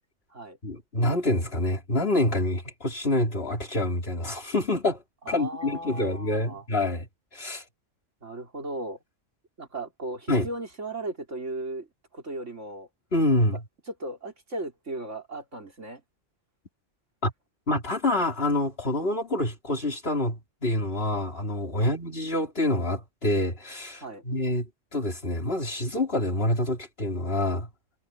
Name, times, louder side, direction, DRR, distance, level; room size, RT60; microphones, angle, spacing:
voice 1, 0.6-5.0 5.3-7.1 7.3-7.6 10.3-10.5 13.1-13.6 17.2-17.3 17.7-27.7, left 1 dB, 50° left, 4.4 m, -27 dB
voice 2, 5.2-6.6 8.2-9.0 9.6-11.9 12.1-12.9 13.9-16.0 21.8-22.0 24.0-24.3, right 2 dB, 75° right, 4.8 m, -36 dB
omnidirectional pair, 1.3 m